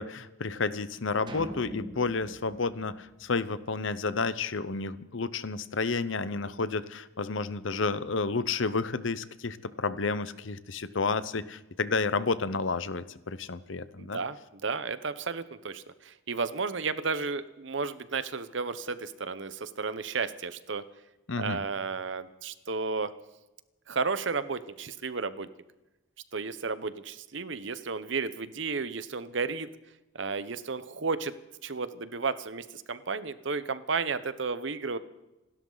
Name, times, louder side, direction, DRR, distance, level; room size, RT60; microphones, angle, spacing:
voice 1, 0.0-14.2 21.3-21.6, left 4 dB, 70° left, 15 dB, 0.8 m, -31 dB
sound 1, 1.3-3.7, equal, 25° right, 1.6 m, -43 dB
voice 2, 14.0-20.8 21.3-23.1 23.9-25.5 26.3-29.7 30.1-35.0, right 4 dB, 65° right, 14 dB, 0.9 m, -33 dB
27.5 x 12.5 x 4.0 m, 1.0 s
head